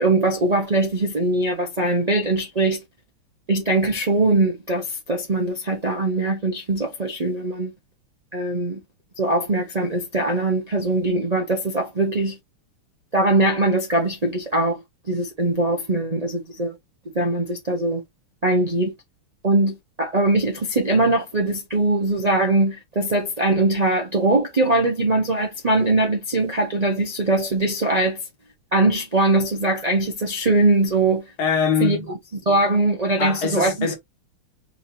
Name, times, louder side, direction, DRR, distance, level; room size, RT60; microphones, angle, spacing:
voice 1, 0.0-2.8 3.5-7.7 8.3-8.8 9.2-12.4 13.1-14.8 15.1-16.7 17.1-18.0 18.4-18.9 19.4-28.2 28.7-31.3 31.8-32.0 32.5-33.9, right 2 dB, 85° right, 0.3 m, -21 dB
voice 2, 31.4-32.1 33.2-34.0, left 6 dB, 50° left, 1.8 m, -23 dB
4.5 x 2.6 x 4.3 m
omnidirectional pair, 2.3 m